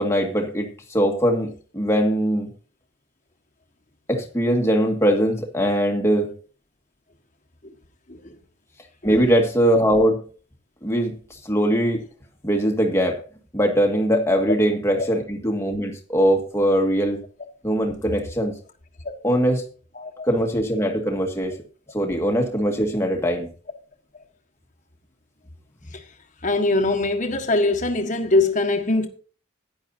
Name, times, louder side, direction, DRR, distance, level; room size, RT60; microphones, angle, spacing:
voice 1, 0.0-2.5 4.1-6.3 9.0-10.2 10.8-12.1 12.4-13.2 13.5-17.2 17.6-18.5 19.2-19.7 20.3-21.6 21.9-23.5, equal, 15° left, 1.8 m, -21 dB
voice 2, 19.9-20.3 25.9-26.0 26.4-29.1, left 2 dB, 35° left, 1.6 m, -22 dB
15.0 x 10.5 x 2.7 m
head